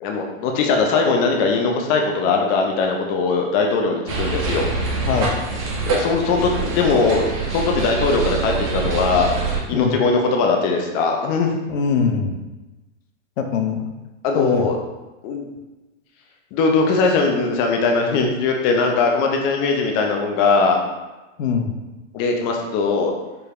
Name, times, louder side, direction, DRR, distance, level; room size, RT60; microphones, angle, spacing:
voice 1, 0.0-4.7 5.9-9.3 9.7-11.5 14.2-14.8 15.2-15.5 16.5-20.8 22.1-23.1, left 4 dB, 25° left, 2 dB, 0.3 m, -20 dB
sound 1, 4.1-9.6, right 3 dB, 35° right, 0.9 m, -25 dB
voice 2, 5.1-5.4 9.7-10.0 11.7-12.3 13.4-13.8 14.3-14.7 21.4-21.7, left 6 dB, 75° left, 5 dB, 0.7 m, -21 dB
4.6 x 3.2 x 2.4 m, 1.1 s
hypercardioid pair, 115°, 39 cm